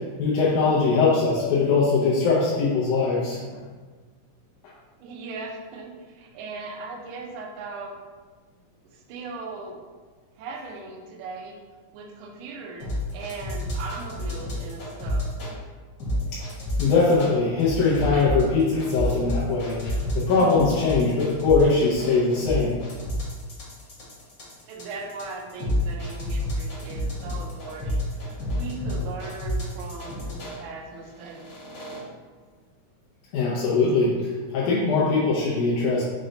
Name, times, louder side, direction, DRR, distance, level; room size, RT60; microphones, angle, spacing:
voice 1, 0.0-3.4 16.3-16.4 16.8-22.7 33.3-36.0, left 4 dB, 85° left, -7 dB, 2.2 m, -21 dB
voice 2, 5.0-7.9 8.9-9.8 10.4-11.6 11.9-15.3 24.7-31.5, right 3 dB, 80° right, 1 dB, 2.0 m, -38 dB
sound 1, 12.8-15.5 16.0-17.3 17.6-30.6 31.2-32.0, equal, 55° left, 1.3 m, -29 dB
6.0 x 2.2 x 3.8 m, 1.4 s
omnidirectional pair, 3.4 m